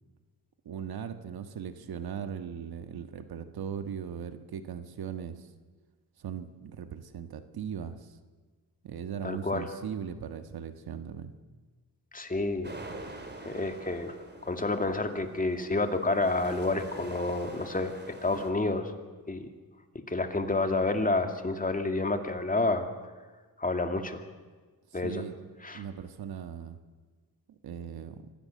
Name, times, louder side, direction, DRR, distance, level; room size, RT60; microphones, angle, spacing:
voice 1, 0.7-5.5 6.2-8.2 8.8-11.3 24.9-25.3 25.7-26.8 27.6-28.2, right 8 dB, 70° right, 9 dB, 1.6 m, -39 dB
voice 2, 9.2-9.6 12.1-12.8 13.4-14.1 14.4-17.9 18.2-18.9 19.3-19.5 20.1-22.9 23.6-24.2 24.9-25.2 25.6-25.8, left 2 dB, 20° left, 6 dB, 2.3 m, -29 dB
sound 1, 12.6-18.5, right 2 dB, 25° right, 3.3 m, -46 dB
25.5 x 16.5 x 7.8 m, 1.4 s
cardioid pair, 95°, 38 cm